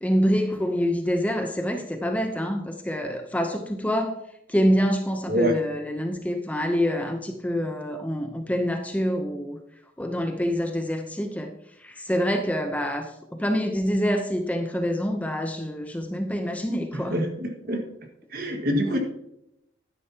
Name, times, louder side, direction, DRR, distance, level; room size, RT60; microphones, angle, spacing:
voice 1, 0.0-4.2 4.5-9.6 10.0-11.5 11.8-17.2, equal, 10° left, 5 dB, 0.7 m, -26 dB
voice 2, 16.9-17.8 18.3-19.0, equal, 50° right, 3 dB, 1.8 m, -25 dB
12.0 x 10.5 x 2.9 m, 0.79 s
head